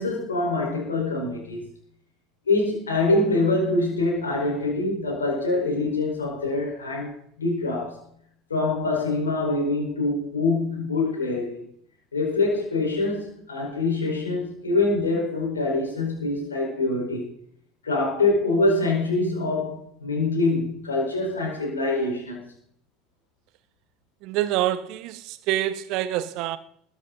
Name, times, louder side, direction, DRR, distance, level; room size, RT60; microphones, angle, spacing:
voice 1, 0.0-1.6 2.5-8.0 8.5-11.6 12.1-17.3 17.8-22.4, left 2 dB, 85° left, 4.8 m, -25 dB
voice 2, 24.2-26.6, right 13 dB, 55° right, 1.2 m, -26 dB
21.0 x 8.9 x 4.1 m
figure-of-eight pair, 70°, 0 cm